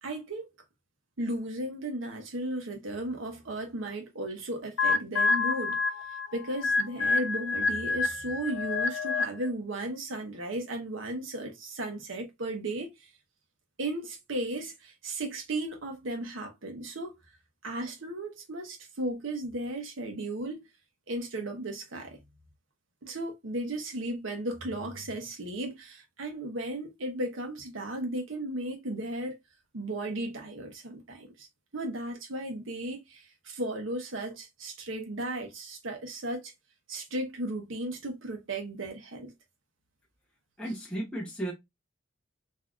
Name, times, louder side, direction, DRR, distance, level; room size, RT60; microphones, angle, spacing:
voice 1, 0.0-0.5 1.2-5.8 6.3-13.1 13.8-17.1 17.6-20.7 21.1-22.2 23.0-29.4 29.7-31.5 31.7-36.5 36.9-39.3, right 1 dB, 90° right, 0.9 m, -35 dB
sound 1, 4.8-9.5, left 4 dB, 90° left, 0.6 m, -28 dB
voice 2, 40.6-41.5, right 1 dB, 5° left, 0.7 m, -34 dB
3.6 x 2.7 x 2.3 m
head